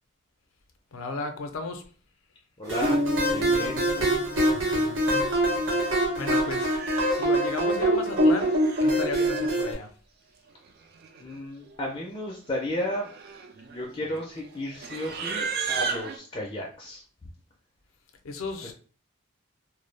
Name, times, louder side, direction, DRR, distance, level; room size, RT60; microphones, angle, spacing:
voice 1, 0.9-1.8 4.5-5.3 6.2-6.8 7.1-9.9 18.2-18.7, left 3 dB, 90° left, 6 dB, 0.4 m, -35 dB
voice 2, 2.6-4.1 11.2-13.1 13.7-17.0, equal, 25° left, -1 dB, 0.4 m, -33 dB
sound 1, 2.7-9.7, right 1 dB, 75° right, 0.8 m, -24 dB
sound 2, 2.8-6.6, left 1 dB, 25° right, 0.7 m, -33 dB
Livestock farm animals working animals, 6.0-6.1 6.5-7.5 8.3-9.6 10.7-10.8 11.0-11.4 11.7-11.9 12.6-16.2, right 5 dB, 50° right, 0.3 m, -35 dB
2.2 x 2.0 x 3.1 m, 0.40 s
head